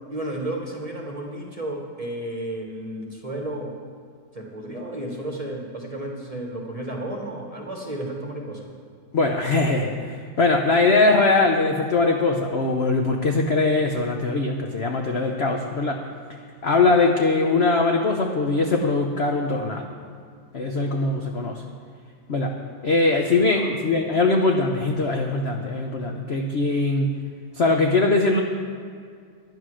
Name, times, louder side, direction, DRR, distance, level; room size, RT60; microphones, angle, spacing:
voice 1, 0.0-3.7 4.3-8.7 23.5-23.8, right 1 dB, 25° right, 0 dB, 1.0 m, -32 dB
voice 2, 9.1-16.0 16.6-19.8 20.5-21.6 22.3-22.5 22.8-27.1 27.6-28.4, left 3 dB, 60° left, 2 dB, 0.6 m, -21 dB
10.5 x 10.0 x 6.3 m, 2.2 s
omnidirectional pair, 2.1 m